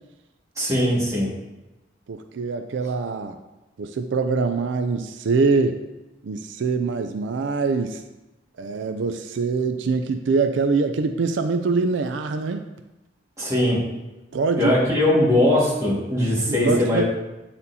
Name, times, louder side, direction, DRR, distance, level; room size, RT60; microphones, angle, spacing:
voice 1, 0.6-1.3 13.4-13.8 14.6-17.0, left 1 dB, 20° right, -6 dB, 1.8 m, -20 dB
voice 2, 2.1-3.4 3.8-5.8 6.2-8.0 8.6-12.7 14.3-14.8 16.5-17.0, right 4 dB, 85° right, 7 dB, 0.4 m, -24 dB
8.6 x 4.2 x 2.7 m, 1.0 s
head